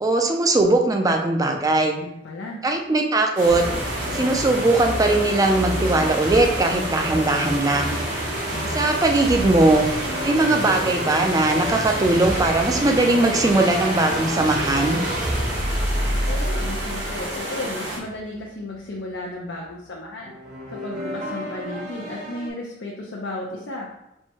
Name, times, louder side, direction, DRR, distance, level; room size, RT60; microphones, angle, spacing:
voice 1, 0.0-2.0 2.6-3.6 4.1-8.0 8.7-9.9 10.2-15.0, right 2 dB, 20° right, 3 dB, 0.4 m, -20 dB
voice 2, 2.0-2.6 8.2-8.7 16.3-20.3 20.7-23.9, left 2 dB, 85° left, -3 dB, 0.6 m, -34 dB
sound 1, 3.4-18.4 20.2-22.5, right 1 dB, 45° right, 1.1 m, -29 dB
sound 2, 3.4-18.0, right 1 dB, 70° right, 1.3 m, -31 dB
4.4 x 2.2 x 4.3 m, 0.87 s
head